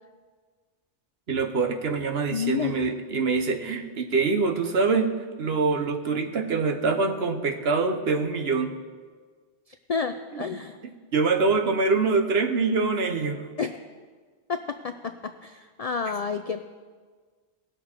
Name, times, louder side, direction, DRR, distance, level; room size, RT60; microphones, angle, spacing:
voice 1, 1.3-5.1 5.4-8.7 10.3-10.5 11.1-13.4, right 4 dB, 65° right, 4 dB, 1.2 m, -24 dB
voice 2, 2.3-2.8 9.9-10.8 13.6-13.8 14.5-16.6, left 6 dB, 60° left, 9 dB, 0.4 m, -30 dB
18.5 x 6.7 x 4.4 m, 1.5 s
omnidirectional pair, 1.1 m